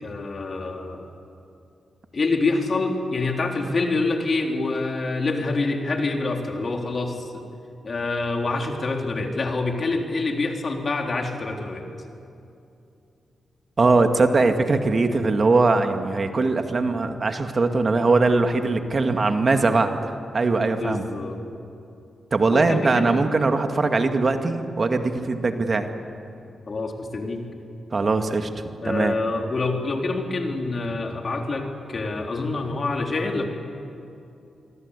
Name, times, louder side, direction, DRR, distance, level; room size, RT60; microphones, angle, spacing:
voice 1, 0.0-1.0 2.1-7.4 7.8-11.8 20.7-21.4 22.5-23.2 26.7-27.5 28.8-33.4, left 3 dB, 55° left, 2 dB, 3.8 m, -26 dB
voice 2, 13.8-21.0 22.3-25.9 27.9-28.5 28.8-29.1, right 3 dB, 50° right, 6 dB, 2.2 m, -21 dB
26.5 x 23.5 x 8.4 m, 2.6 s
supercardioid pair, 50°, 0 cm